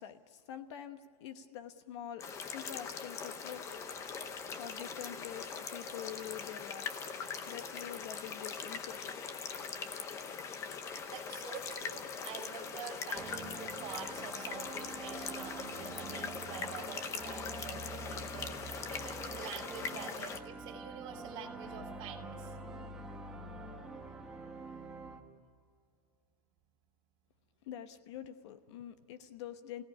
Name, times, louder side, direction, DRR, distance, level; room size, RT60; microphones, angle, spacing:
voice 1, 0.0-4.0 4.6-7.1 7.5-9.4 27.6-29.8, left 10 dB, 45° left, 10 dB, 1.1 m, -46 dB
sound 1, 2.2-20.4, left 5 dB, 15° left, 0.8 m, -41 dB
voice 2, 11.1-22.5 25.4-25.5, right 7 dB, 25° right, 0 dB, 3.0 m, -47 dB
sound 2, 13.1-25.2, right 3 dB, 5° right, 1.3 m, -46 dB
28.0 x 17.0 x 9.9 m, 2.3 s
supercardioid pair, 175°, 20 cm